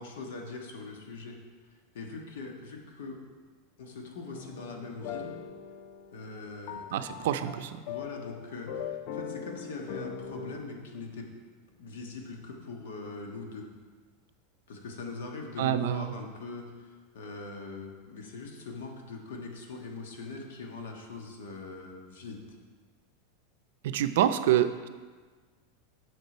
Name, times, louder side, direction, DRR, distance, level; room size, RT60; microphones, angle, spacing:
voice 1, 0.0-1.4 1.9-3.2 3.8-5.4 6.1-7.0 7.8-11.3 11.8-13.7 14.7-22.6, left 3 dB, 90° left, 2 dB, 1.4 m, -42 dB
sound 1, 4.3-10.6, left 8 dB, 45° left, 0.4 m, -41 dB
voice 2, 6.9-7.8 15.6-16.1 23.8-24.9, right 11 dB, 70° right, 10 dB, 0.5 m, -27 dB
8.2 x 6.6 x 4.4 m, 1.4 s
supercardioid pair, 160°, 0 cm